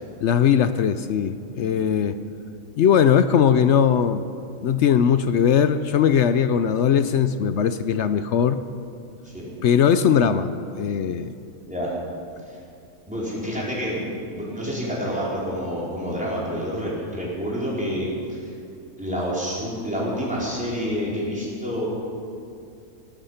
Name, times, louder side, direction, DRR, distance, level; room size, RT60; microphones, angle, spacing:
voice 1, 0.2-2.2 2.8-4.2 4.6-8.6 9.6-10.5 10.8-11.3, left 8 dB, 65° left, 12 dB, 0.8 m, -19 dB
voice 2, 13.1-18.5 19.0-21.9, equal, 5° right, -6 dB, 4.3 m, -28 dB
19.0 x 12.0 x 5.7 m, 2.5 s
omnidirectional pair, 1.5 m